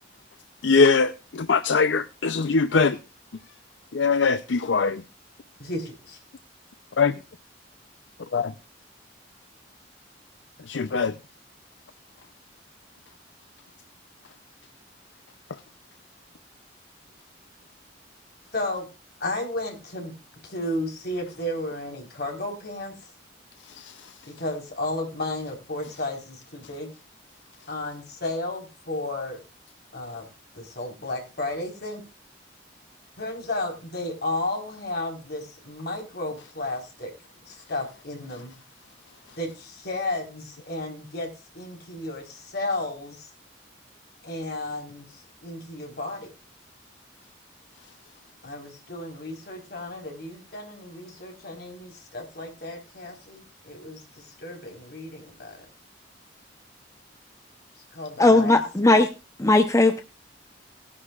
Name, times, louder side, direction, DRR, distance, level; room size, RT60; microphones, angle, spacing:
voice 1, 0.6-3.0 3.9-5.0 7.0-7.1 8.3-8.4 10.7-11.1 23.8-23.9, left 4 dB, 75° left, 0.5 m, -21 dB
voice 2, 5.6-6.2 18.5-18.9 19.2-20.2 20.4-23.1 24.3-26.9 27.7-29.4 29.9-30.3 30.5-32.1 33.2-37.1 37.5-38.5 39.4-43.3 44.2-46.3 48.4-55.6 57.8-58.6, left 2 dB, 60° left, 4.1 m, -33 dB
voice 3, 58.2-59.1 59.4-60.0, left 2 dB, 15° left, 0.7 m, -18 dB
19.0 x 9.9 x 2.4 m
head